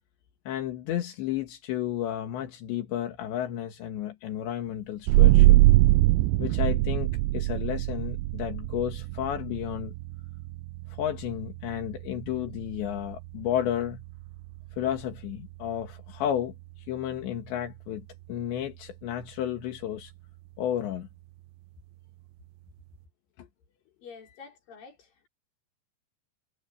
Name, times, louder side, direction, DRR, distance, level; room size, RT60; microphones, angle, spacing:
voice 1, 0.5-5.6 6.4-9.9 10.9-14.0 14.7-16.6 16.9-20.1 20.6-21.1 23.4-23.5 24.2-24.4, left 11 dB, 80° left, 4.1 m, -32 dB
sound 1, 5.1-16.3, right 18 dB, 85° right, 2.8 m, -24 dB
voice 2, 23.9-25.3, left 5 dB, 50° left, 6.3 m, -48 dB
omnidirectional pair, 5.1 m